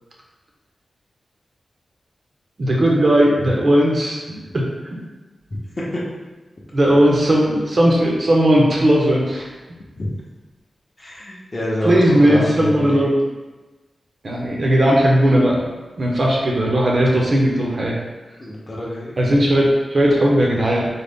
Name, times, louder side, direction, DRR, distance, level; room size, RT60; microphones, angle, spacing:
voice 1, 2.6-4.2 6.7-9.5 11.8-13.1 14.2-15.6 16.0-18.0 19.2-20.9, equal, 40° right, -3 dB, 0.6 m, -16 dB
voice 2, 11.0-13.1 18.4-19.1, left 1 dB, 30° left, -5 dB, 0.7 m, -26 dB
3.8 x 2.0 x 3.5 m, 1.2 s
wide cardioid pair, 165°, 0 cm